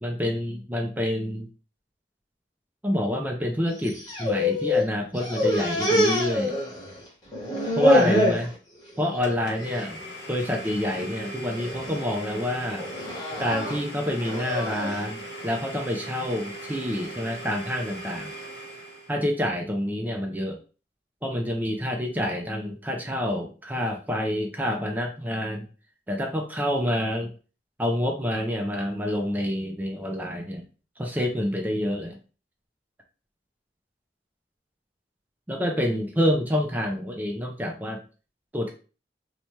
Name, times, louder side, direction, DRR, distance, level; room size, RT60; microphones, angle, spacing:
voice 1, 0.0-1.5 2.8-6.6 7.8-8.5 9.0-10.0 10.3-12.8 13.4-18.3 19.1-20.6 21.2-25.7 26.1-27.3 27.8-30.7 31.0-32.2 35.5-38.0 38.5-38.7, equal, 10° right, 2 dB, 0.4 m, -27 dB
sound 1, 3.8-4.9 5.1-7.0 7.3-8.5 8.9-9.3 9.6-9.8 10.7-11.1 11.6-12.0 12.8-15.0, left 1 dB, 20° left, 1.0 m, -25 dB
Domestic sounds home sounds, 9.2-19.2, right 1 dB, 80° left, 1.0 m, -39 dB
2.7 x 2.2 x 3.0 m, 0.35 s
head